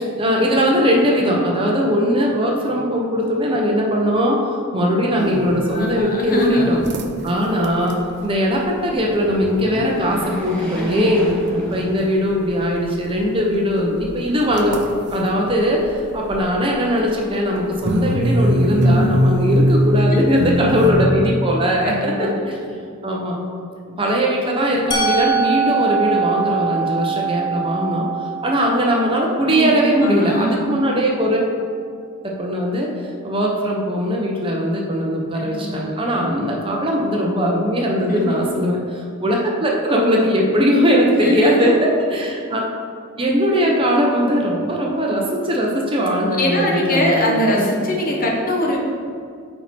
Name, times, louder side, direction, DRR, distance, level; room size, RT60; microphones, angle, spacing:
voice 1, 0.0-4.4 4.7-6.8 7.2-11.3 11.6-14.8 15.1-22.6 23.0-23.4 24.0-28.1 28.4-31.4 32.4-32.9 33.2-42.6 43.2-47.7, equal, 25° right, -1 dB, 0.8 m, -20 dB
sound 1, 5.2-8.1 8.5-8.7 9.1-9.2 9.5-9.6 9.9-10.8 11.2-11.7 12.0-16.5 17.0-21.1, equal, 55° right, 0.6 m, -21 dB
voice 2, 5.7-6.8 10.8-11.1 20.0-20.2 21.7-22.3 29.5-29.6 30.0-30.7 35.3-35.6 38.0-38.5 41.1-41.8 46.4-48.8, equal, 45° left, -1 dB, 1.2 m, -22 dB
sound 2, 9.0-12.5 13.0-13.1 14.2-15.0, right 1 dB, 5° left, 1.4 m, -31 dB
Musical instrument, 24.9-30.8, right 5 dB, 20° left, 0.8 m, -24 dB
8.8 x 4.3 x 4.4 m, 2.2 s
head